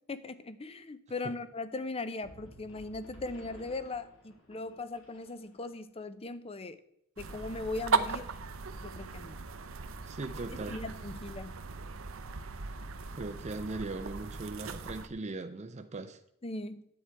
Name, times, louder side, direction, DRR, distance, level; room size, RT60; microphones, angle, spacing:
voice 1, 0.1-6.8 7.2-8.3 8.8-9.4 10.7-11.5 16.4-16.8, left 3 dB, 30° left, 13 dB, 0.7 m, -39 dB
sound 1, 2.2-5.7, equal, 75° left, 2.9 m, -53 dB
sound 2, 7.2-15.1, right 4 dB, 75° right, 0.8 m, -37 dB
voice 2, 10.1-10.8 13.1-16.2, right 2 dB, 35° right, 6 dB, 0.6 m, -39 dB
10.0 x 8.4 x 4.6 m, 0.73 s
head